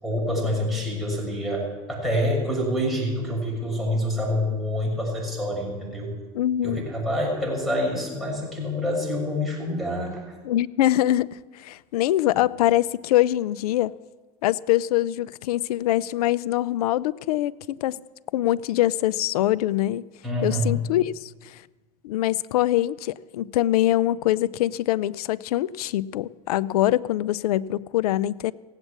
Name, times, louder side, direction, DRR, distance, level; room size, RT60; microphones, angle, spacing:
voice 1, 0.0-6.1 6.6-10.2 20.2-20.7, equal, ahead, -4 dB, 6.6 m, -27 dB
voice 2, 6.3-6.9 10.4-13.9 14.4-18.0 18.3-20.0 20.4-21.6 22.0-28.5, left 14 dB, 90° left, 19 dB, 0.4 m, -24 dB
16.5 x 8.2 x 8.3 m, 1.3 s
supercardioid pair, 105°, 19 cm